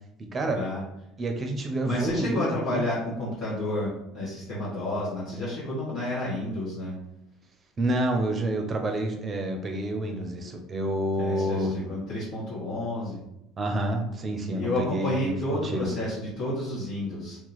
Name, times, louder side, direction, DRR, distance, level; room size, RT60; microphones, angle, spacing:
voice 1, 0.2-0.6 1.2-2.8 7.8-11.7 13.6-15.9, right 1 dB, 35° right, 4 dB, 0.7 m, -28 dB
voice 2, 1.8-7.0 11.2-13.2 14.5-17.4, left 1 dB, 60° left, -8 dB, 1.5 m, -30 dB
2.9 x 2.2 x 4.0 m, 0.86 s
supercardioid pair, 85°, 0 cm